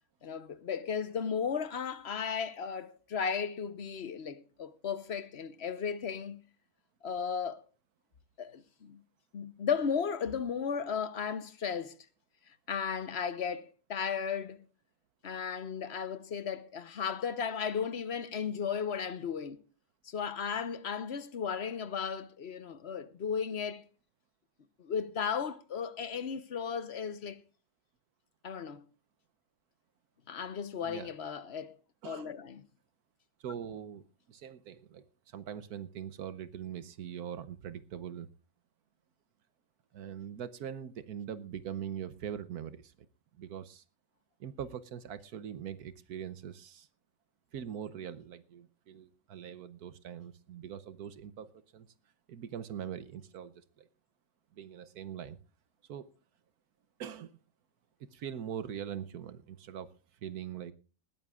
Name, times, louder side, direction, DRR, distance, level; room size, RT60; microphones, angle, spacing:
voice 1, 0.2-6.4 7.0-7.6 8.4-9.0 9.3-12.0 12.7-14.6 15.2-19.6 20.1-23.8 24.8-27.4 28.4-28.8 30.3-31.7 32.0-32.6, left 6 dB, 45° left, 1.0 m, -35 dB
voice 2, 33.4-34.0 34.3-38.3 39.9-43.1 43.4-43.8 44.4-46.9 47.5-51.9 52.3-53.9 54.6-55.4 55.9-56.1 57.0-57.3 58.0-59.9 60.2-60.7, right 9 dB, 65° right, 1.2 m, -42 dB
20.0 x 14.5 x 2.4 m
omnidirectional pair, 1.8 m